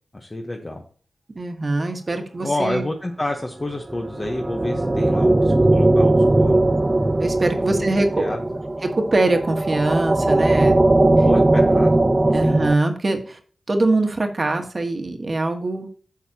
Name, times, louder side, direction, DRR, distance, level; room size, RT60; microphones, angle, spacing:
voice 1, 0.1-0.8 2.4-6.6 7.6-7.8 8.2-8.6 11.1-11.9 12.2-12.6, left 1 dB, 30° left, 2 dB, 1.1 m, -29 dB
voice 2, 1.3-2.8 7.2-8.4 8.8-10.8 12.3-13.4 13.7-15.9, right 2 dB, 45° right, 5 dB, 1.4 m, -22 dB
sound 1, 3.9-12.7, right 2 dB, 25° right, 0.5 m, -19 dB
9.9 x 6.5 x 2.9 m, 0.42 s
wide cardioid pair, 80°, 0 cm